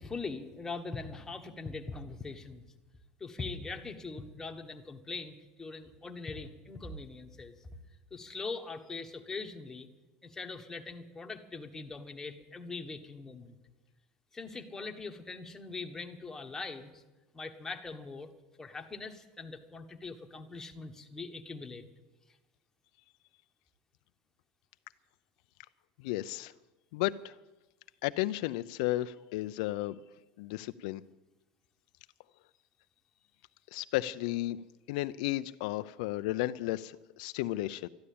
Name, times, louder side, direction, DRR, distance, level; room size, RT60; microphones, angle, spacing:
voice 1, 0.0-2.6 3.2-7.6 8.1-9.9 10.2-13.6 14.3-17.0 17.3-18.3 18.6-21.8, left 4 dB, 10° left, 4 dB, 1.4 m, -42 dB
voice 2, 26.0-26.5 26.9-27.3 28.0-30.0 30.4-31.0 33.7-34.6 34.9-37.9, left 16 dB, 75° left, 12 dB, 0.4 m, -33 dB
13.0 x 11.0 x 8.6 m, 1.1 s
supercardioid pair, 135°, 4 cm